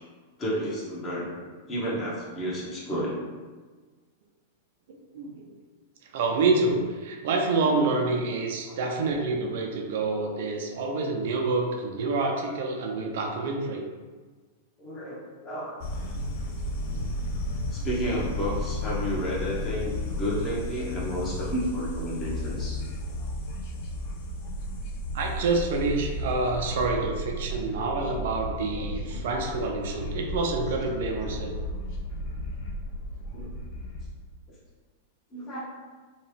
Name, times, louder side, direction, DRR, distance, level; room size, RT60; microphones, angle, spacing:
voice 1, 0.4-1.3 1.7-3.2 8.7-8.9 14.8-15.7 17.7-22.8 29.1-29.3 31.2-31.3 33.3-33.5 35.3-35.6, equal, 30° left, -6 dB, 1.0 m, -31 dB
voice 2, 4.9-5.5 6.1-13.8 25.1-31.5, right 3 dB, 60° right, 2 dB, 0.4 m, -27 dB
sound 1, 15.8-34.1, left 1 dB, 55° left, 0.5 m, -33 dB
2.8 x 2.2 x 3.2 m, 1.4 s
hypercardioid pair, 100°, 0 cm